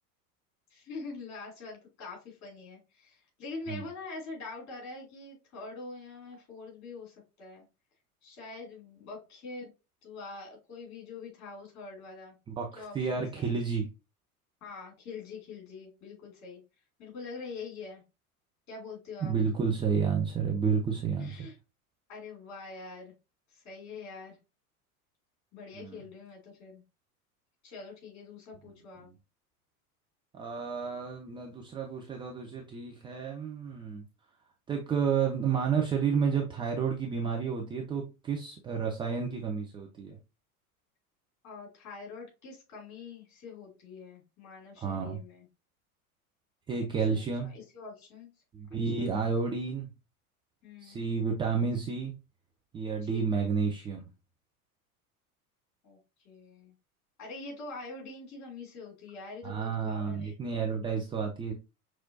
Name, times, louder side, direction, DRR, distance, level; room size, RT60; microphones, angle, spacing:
voice 1, 0.7-7.6 8.2-9.7 10.0-12.3 12.7-13.5 14.6-16.6 17.0-18.0 18.7-19.3 21.2-21.5 22.1-23.1 23.5-24.4 25.5-26.8 27.6-29.1 41.4-45.4 46.7-46.8 47.1-48.3 49.0-49.2 50.6-51.1 53.0-53.4 55.8-56.0 56.2-56.7 57.2-60.3, left 4 dB, 35° left, -1 dB, 2.9 m, -44 dB
voice 2, 12.5-13.9 19.2-21.4 25.7-26.0 29.0-29.1 30.3-34.0 34.7-40.2 44.8-45.2 46.7-47.5 48.5-49.9 50.8-52.1 52.7-54.1 59.4-61.5, right 5 dB, 10° right, 0 dB, 0.5 m, -31 dB
5.9 x 3.0 x 2.7 m, 0.28 s
figure-of-eight pair, 80°, 45 cm